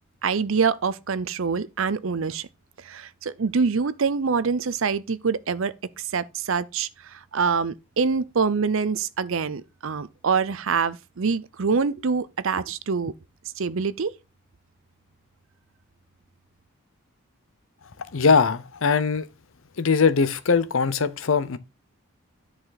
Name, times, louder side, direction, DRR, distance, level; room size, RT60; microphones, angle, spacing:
voice 1, 0.2-2.5 2.8-13.1 13.6-14.1, right 5 dB, 60° right, 0.6 m, -25 dB
voice 2, 18.1-19.3 19.8-21.6, left 5 dB, 60° left, 0.7 m, -21 dB
10.0 x 4.9 x 4.0 m
head